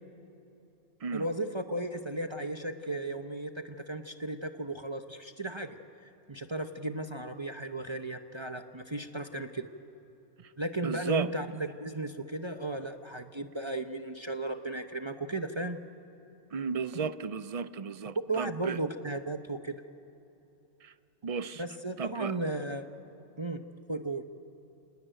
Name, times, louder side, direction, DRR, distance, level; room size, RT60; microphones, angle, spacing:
voice 1, 1.1-5.8 6.3-9.7 10.6-15.8 18.3-19.8 21.6-22.9 23.4-23.6 23.9-24.2, right 2 dB, 25° right, 6 dB, 0.8 m, -35 dB
voice 2, 10.8-11.3 16.5-18.8 20.8-20.9 21.2-21.6 22.0-22.4, right 5 dB, 55° right, 13 dB, 0.4 m, -34 dB
27.5 x 19.5 x 9.1 m, 3.0 s
omnidirectional pair, 1.4 m